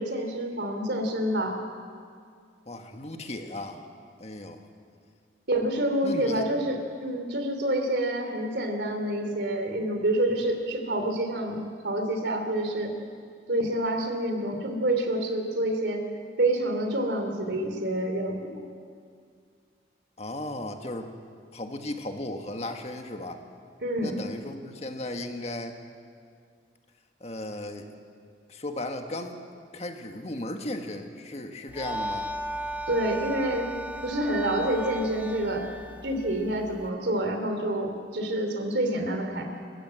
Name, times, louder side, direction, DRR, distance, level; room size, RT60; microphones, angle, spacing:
voice 1, 0.0-1.6 5.5-12.9 13.5-16.0 16.4-18.6 23.8-24.2 32.9-33.8 34.0-35.7 36.0-39.4, right 1 dB, 70° right, 5 dB, 3.1 m, -27 dB
voice 2, 2.6-3.8 4.2-4.6 6.0-6.5 20.2-21.1 21.5-23.4 24.0-25.8 27.2-27.9 28.5-29.4 29.7-32.3, left 1 dB, 35° left, 5 dB, 1.7 m, -36 dB
sound 1, 31.7-36.9, right 1 dB, 10° right, 0.7 m, -36 dB
29.0 x 15.5 x 7.7 m, 2.2 s
head